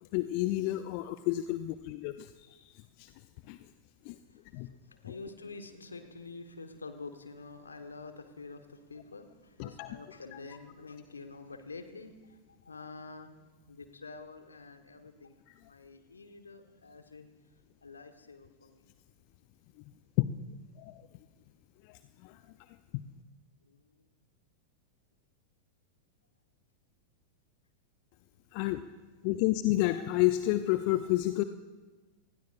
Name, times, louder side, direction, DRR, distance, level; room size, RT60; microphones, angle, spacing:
voice 1, 0.0-3.1 3.5-3.6 4.0-4.2 4.5-4.7 9.6-9.9 10.3-10.4 15.5-15.6 20.2-20.3 20.8-21.0 21.8-22.4 22.9-23.0 28.5-28.8 29.2-31.4, left 16 dB, 45° left, 12 dB, 0.5 m, -30 dB
voice 2, 5.0-12.4 12.6-13.3 13.7-15.3 15.6-17.3 17.8-18.8 23.7-23.8, left 3 dB, 75° left, 8 dB, 1.4 m, -47 dB
28.5 x 19.5 x 2.5 m, 1.2 s
figure-of-eight pair, 90°, 0 cm